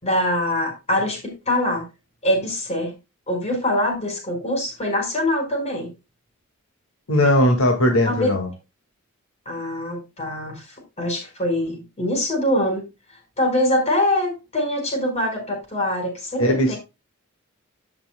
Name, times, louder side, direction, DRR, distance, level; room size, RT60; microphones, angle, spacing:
voice 1, 0.0-1.8 2.2-2.9 3.3-5.9 8.0-8.4 9.5-10.6 11.0-12.8 13.4-16.8, left 1 dB, 30° left, 2 dB, 4.7 m, -23 dB
voice 2, 7.1-8.5 16.4-16.7, left 1 dB, 70° left, 2 dB, 1.9 m, -18 dB
15.0 x 6.0 x 2.2 m, 0.24 s
head